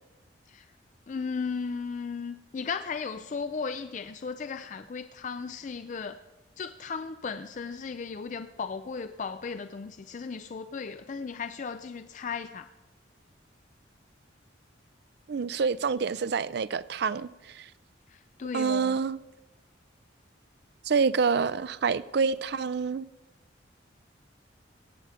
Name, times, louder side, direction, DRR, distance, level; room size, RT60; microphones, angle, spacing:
voice 1, 1.1-6.2 6.6-12.7 18.1-19.0, left 5 dB, 40° left, 0.4 m, -36 dB
voice 2, 15.3-17.7 18.5-19.2 20.9-23.1, right 5 dB, 60° right, 0.4 m, -27 dB
17.5 x 7.9 x 5.0 m
head